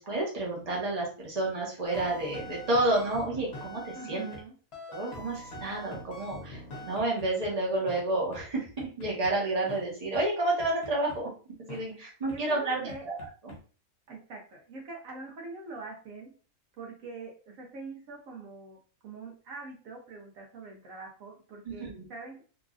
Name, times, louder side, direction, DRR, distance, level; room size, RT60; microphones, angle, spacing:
voice 1, 0.0-4.3 4.9-11.3 11.7-13.1 13.4-13.5 21.6-22.0, right 2 dB, 30° right, -3 dB, 1.0 m, -30 dB
sound 1, 1.8-4.4 4.7-7.5 7.9-8.0 8.3-8.4 8.8-9.3 9.7-9.8 10.1-10.2 10.6-11.2 11.7-11.8 12.3-12.4 12.9-13.6, left 1 dB, 55° left, 0.9 m, -44 dB
voice 2, 3.9-4.6 12.3-13.1 14.1-16.3 16.8-22.4, right 3 dB, 75° right, 0 dB, 1.1 m, -44 dB
3.1 x 2.4 x 2.4 m, 0.38 s
omnidirectional pair, 1.4 m